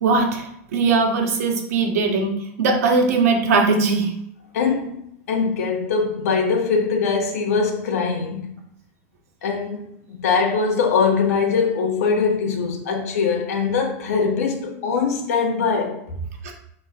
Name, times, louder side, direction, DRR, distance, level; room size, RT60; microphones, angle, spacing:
voice 1, 0.0-4.1 16.4-16.5, right 4 dB, 80° right, 1.7 m, -20 dB
voice 2, 4.5-5.0 5.3-8.5 9.4-16.0, left 5 dB, 85° left, 1.5 m, -22 dB
7.0 x 3.9 x 3.8 m
supercardioid pair, 165°, 8 cm